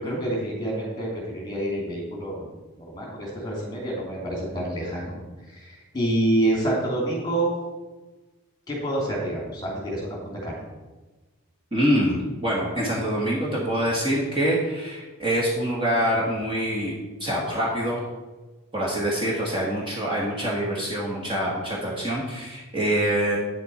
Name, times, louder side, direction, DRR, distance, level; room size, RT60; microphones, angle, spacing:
voice 1, 0.0-2.5 2.8-5.2 5.5-7.5 8.7-10.6, right 1 dB, 20° left, -2 dB, 2.6 m, -27 dB
voice 2, 11.7-18.0 18.7-23.4, equal, 20° right, -4 dB, 1.6 m, -25 dB
8.8 x 7.8 x 4.3 m, 1.2 s
head